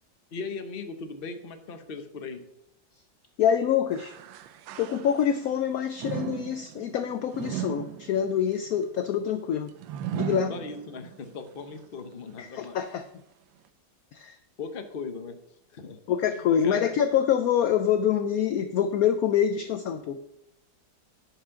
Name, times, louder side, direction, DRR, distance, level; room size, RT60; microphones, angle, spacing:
voice 1, 0.3-2.4 10.5-12.8 14.6-15.4 15.7-16.0 16.6-16.9, left 4 dB, 40° left, 7 dB, 0.8 m, -38 dB
voice 2, 3.4-4.1 4.8-9.7 10.1-10.5 12.4-13.0 14.1-14.4 16.1-20.2, left 9 dB, 70° left, 9 dB, 0.8 m, -25 dB
sound 1, 3.9-5.5 6.0-11.2 11.7-11.8 12.7-12.8, right 11 dB, 90° right, 1.4 m, -37 dB
11.0 x 5.0 x 5.7 m, 0.80 s
omnidirectional pair, 2.1 m